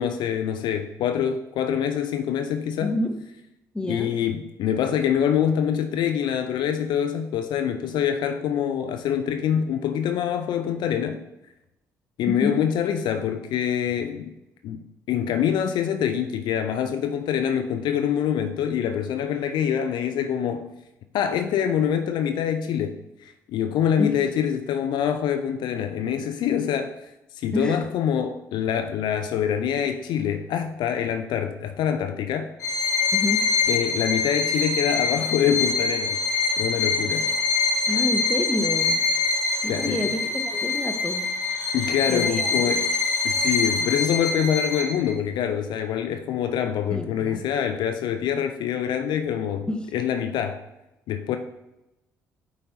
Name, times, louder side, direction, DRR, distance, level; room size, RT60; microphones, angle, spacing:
voice 1, 0.0-2.9 3.9-11.2 12.2-14.3 14.6-20.8 21.1-32.5 33.7-36.2 36.6-37.3 39.7-40.1 41.7-42.9 43.2-50.6 51.1-51.4, left 8 dB, 55° left, 7 dB, 0.4 m, -25 dB
voice 2, 2.8-3.2 3.7-4.2 12.3-12.6 24.0-24.2 27.5-27.8 33.1-33.5 37.9-39.0 39.6-41.3 42.1-42.8 46.9-47.4 49.7-49.9, left 1 dB, 10° left, 5 dB, 0.8 m, -28 dB
Bowed string instrument, 32.6-45.1, left 4 dB, 80° left, 1.1 m, -24 dB
8.6 x 4.2 x 2.8 m, 0.92 s
figure-of-eight pair, 45°, 9 cm